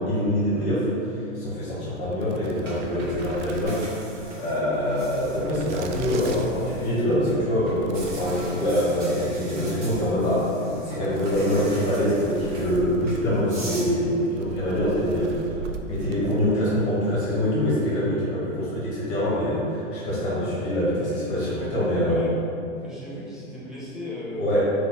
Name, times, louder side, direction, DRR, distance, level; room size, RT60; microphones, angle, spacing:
voice 1, 0.0-10.5 10.8-15.6 15.9-22.2 24.4-24.6, equal, 40° left, -9 dB, 1.5 m, -25 dB
sound 1, 1.9-16.8, right 5 dB, 60° right, 0.5 m, -41 dB
sound 2, 2.6-7.3 7.7-13.9, right 1 dB, 25° right, 1.0 m, -42 dB
sound 3, 4.6-16.2, equal, 20° left, 1.0 m, -42 dB
voice 2, 21.6-22.3 22.8-24.6, left 1 dB, ahead, -10 dB, 0.7 m, -36 dB
3.9 x 2.7 x 3.7 m, 2.7 s
hypercardioid pair, 130°, 39 cm